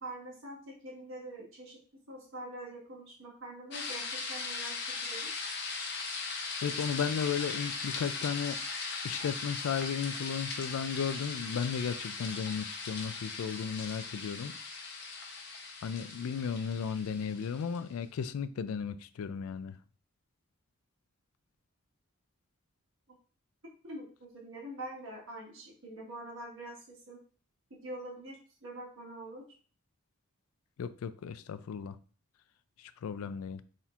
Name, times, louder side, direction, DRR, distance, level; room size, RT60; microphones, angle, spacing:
voice 1, 0.0-1.8 2.1-5.3 23.8-27.2 27.8-29.4, right 1 dB, 70° right, -2 dB, 1.4 m, -45 dB
sound 1, 3.7-17.8, left 4 dB, 50° left, 0.7 m, -39 dB
voice 2, 6.6-8.6 9.0-14.5 15.8-19.8 30.8-32.0 32.8-33.6, left 7 dB, 90° left, 14 dB, 0.3 m, -35 dB
4.3 x 3.6 x 2.4 m, 0.40 s
head